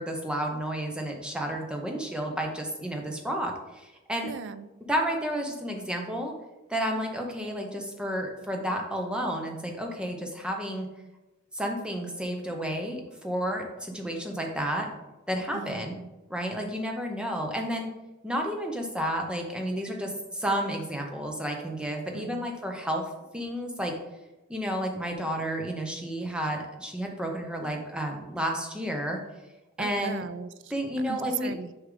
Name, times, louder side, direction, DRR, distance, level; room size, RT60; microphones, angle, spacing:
voice 1, 0.0-4.3 4.9-6.3 6.7-10.9 11.5-14.9 15.3-16.0 16.3-17.9 18.2-23.1 23.3-23.9 24.5-29.2 29.8-30.2 30.7-31.5, equal, 5° right, 2 dB, 0.7 m, -31 dB
voice 2, 4.2-4.7 15.5-16.1 22.1-22.5 29.8-30.7 31.1-31.7, right 6 dB, 55° right, 13 dB, 0.3 m, -37 dB
6.4 x 4.7 x 3.8 m, 1.1 s
head